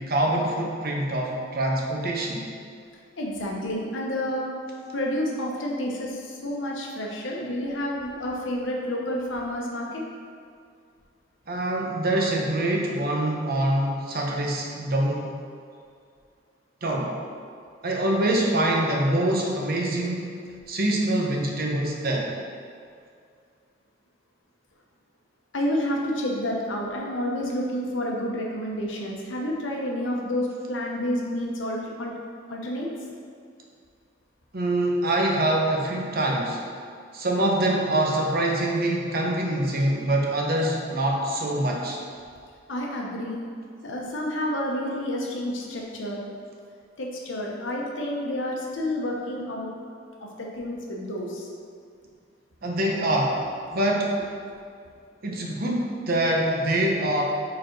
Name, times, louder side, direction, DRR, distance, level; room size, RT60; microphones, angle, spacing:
voice 1, 0.0-2.5 11.5-15.4 16.8-17.1 17.8-20.4 20.7-22.3 34.5-36.6 37.1-42.0 52.6-53.4 53.7-54.2 55.2-57.2, right 1 dB, 50° right, -1 dB, 0.8 m, -25 dB
voice 2, 3.2-4.5 4.9-10.0 25.5-32.1 32.5-32.9 42.7-43.4 43.8-46.2 47.0-49.7 50.2-51.5, left 1 dB, 75° left, -1 dB, 0.9 m, -29 dB
5.0 x 4.2 x 4.5 m, 2.3 s
head